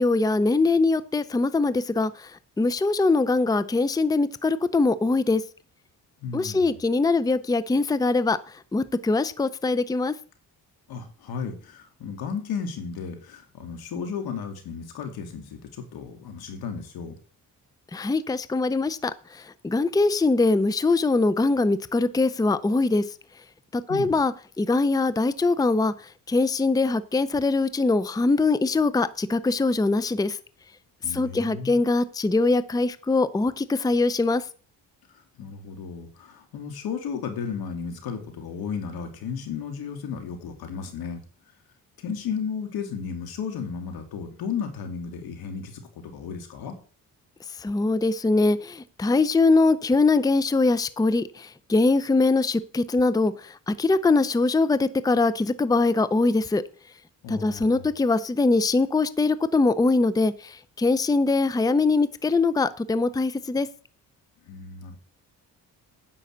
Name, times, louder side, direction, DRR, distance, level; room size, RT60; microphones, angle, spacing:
voice 1, 0.0-5.4 6.3-10.1 17.9-23.1 23.7-25.9 26.3-30.4 31.1-34.4 47.6-56.6 57.3-63.7, left 3 dB, 10° left, 0.6 m, -22 dB
voice 2, 6.2-6.8 10.9-17.1 23.9-24.2 31.0-31.8 35.1-41.2 42.0-46.8 57.2-57.9 64.4-65.0, left 6 dB, 85° left, 2.6 m, -34 dB
10.0 x 5.4 x 7.9 m
cardioid pair, 95°, 36 cm